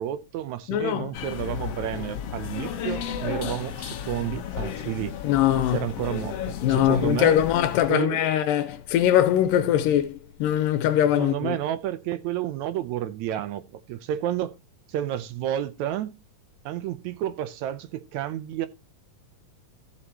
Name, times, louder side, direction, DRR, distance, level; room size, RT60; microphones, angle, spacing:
voice 1, 0.0-5.2 5.7-7.4 7.9-8.2 11.2-14.5 14.9-16.1 16.6-18.7, right 12 dB, 75° right, 1.8 m, -30 dB
voice 2, 0.7-1.1 5.2-5.8 6.6-11.6, left 11 dB, 85° left, 2.4 m, -22 dB
sound 1, 1.1-7.9, left 8 dB, 65° left, 1.6 m, -33 dB
14.0 x 7.9 x 2.9 m
omnidirectional pair, 3.8 m